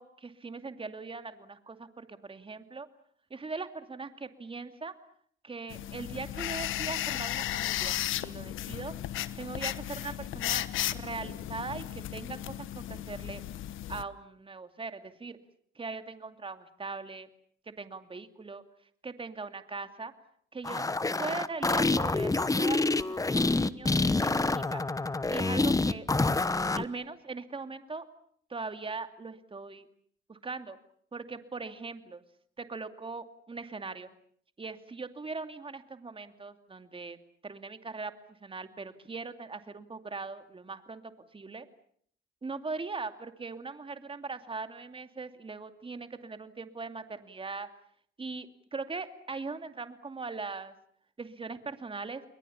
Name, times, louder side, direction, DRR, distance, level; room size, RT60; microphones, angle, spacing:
voice 1, 0.0-2.9 3.3-4.9 5.4-8.9 9.3-10.6 10.9-13.4 13.9-15.4 15.8-17.3 17.7-18.6 19.0-20.1 20.5-20.8 21.2-24.8 25.3-26.1 26.8-28.1 28.5-29.9 30.3-30.8 31.1-32.2 32.6-34.1 34.6-37.2 37.4-38.1 38.4-41.0 41.3-41.7 42.4-47.7 48.2-50.7 51.2-52.2, right 4 dB, 25° right, 9 dB, 2.6 m, -40 dB
sound 1, 5.7-14.0, left 13 dB, 85° left, 1.2 m, -35 dB
sound 2, 20.6-26.9, left 3 dB, 15° left, 1.1 m, -27 dB
30.0 x 22.0 x 7.2 m, 0.62 s
cardioid pair, 90°, 20 cm